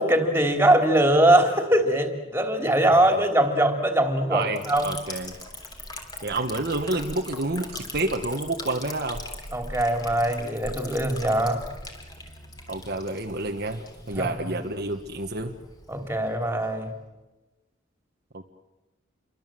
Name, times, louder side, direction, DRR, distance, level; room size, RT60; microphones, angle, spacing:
voice 1, 0.0-4.9 9.5-11.6 14.2-14.3 15.9-16.9, right 1 dB, 10° right, 4 dB, 3.2 m, -22 dB
voice 2, 4.3-5.4 6.2-9.2 12.7-13.8 14.1-15.6 18.3-18.4, right 2 dB, 50° right, 4 dB, 1.4 m, -29 dB
Liquid, 4.6-17.0, left 1 dB, 20° left, 3.4 m, -41 dB
28.5 x 24.0 x 7.7 m, 1.1 s
head